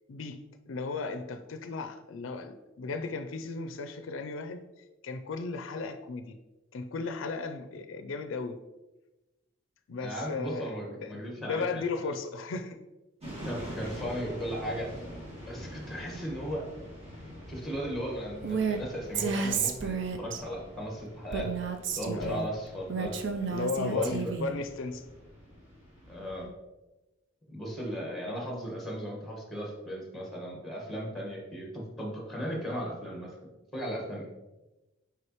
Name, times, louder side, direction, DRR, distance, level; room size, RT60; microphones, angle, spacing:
voice 1, 0.1-0.4 0.7-4.6 5.0-6.4 6.7-8.6 9.9-10.7 11.0-12.8 22.1-22.4 23.5-25.0, left 4 dB, 75° left, 8 dB, 0.4 m, -35 dB
voice 2, 10.0-12.1 13.4-14.9 15.5-16.7 17.5-21.5 22.0-23.2 23.8-24.3 26.1-26.5 27.5-34.3, equal, ahead, -1 dB, 1.4 m, -36 dB
sound 1, 13.2-26.5, equal, 30° right, 1.9 m, -45 dB
Female speech woman speaking, 18.4-18.8 19.1-20.4 21.3-22.4 22.9-24.5, right 6 dB, 60° right, 0.5 m, -31 dB
6.4 x 4.8 x 3.0 m, 1.1 s
head